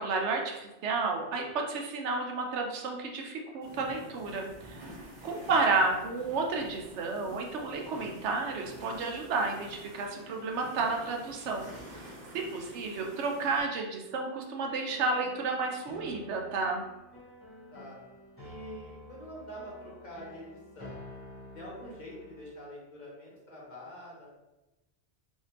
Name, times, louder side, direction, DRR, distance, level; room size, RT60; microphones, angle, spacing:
voice 1, 0.0-4.8 5.2-11.7 11.9-12.1 12.3-16.8, right 3 dB, 80° right, 2 dB, 0.9 m, -31 dB
sound 1, 3.6-13.6, equal, 45° right, 0.8 m, -48 dB
sound 2, 6.4-7.4 8.6-11.9 14.6-22.5, left 1 dB, 10° left, 1.3 m, -51 dB
voice 2, 18.4-21.0 21.5-24.3, equal, 45° left, -4 dB, 0.9 m, -46 dB
3.4 x 2.7 x 2.8 m, 1.0 s
omnidirectional pair, 1.2 m